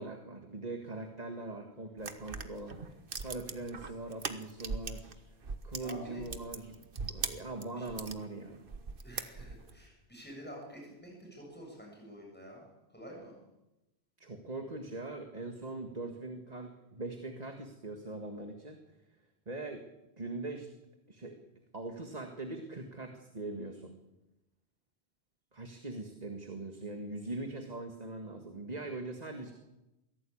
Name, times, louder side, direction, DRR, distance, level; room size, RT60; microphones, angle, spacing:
voice 1, 0.0-5.2 5.6-6.8 7.1-8.6 14.2-18.8 19.5-19.9 20.2-20.7 21.1-21.4 21.7-24.0 25.5-29.5, right 2 dB, 40° right, 4 dB, 1.9 m, -41 dB
sound 1, 2.0-5.1 5.4-8.2 8.7-9.8, right 4 dB, 55° right, 1.5 m, -40 dB
voice 2, 5.8-6.2 7.8-7.9 9.0-12.7 12.9-13.3, equal, 10° left, -1 dB, 7.5 m, -48 dB
23.0 x 16.5 x 8.7 m, 0.95 s
omnidirectional pair, 1.1 m